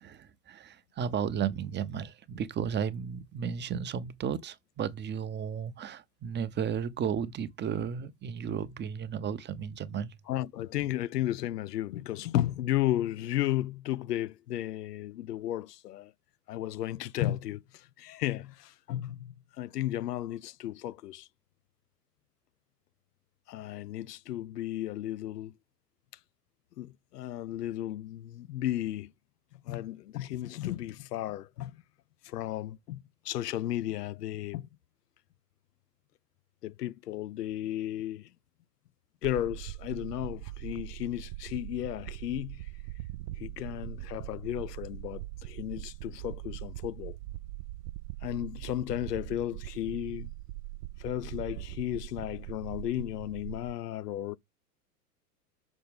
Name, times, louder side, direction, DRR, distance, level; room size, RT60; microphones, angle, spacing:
voice 1, 0.0-10.1, right 8 dB, 20° right, 0.9 m, -34 dB
voice 2, 10.3-16.1 16.5-21.3 23.5-25.5 26.8-29.1 29.7-31.8 32.2-34.7 36.6-38.3 39.2-42.7 43.4-47.2 48.2-50.3 51.0-54.4, left 13 dB, 75° left, 0.7 m, -34 dB
sound 1, 39.2-53.7, right 17 dB, 45° right, 0.5 m, -41 dB
6.6 x 6.1 x 3.5 m
hypercardioid pair, 95°, 48 cm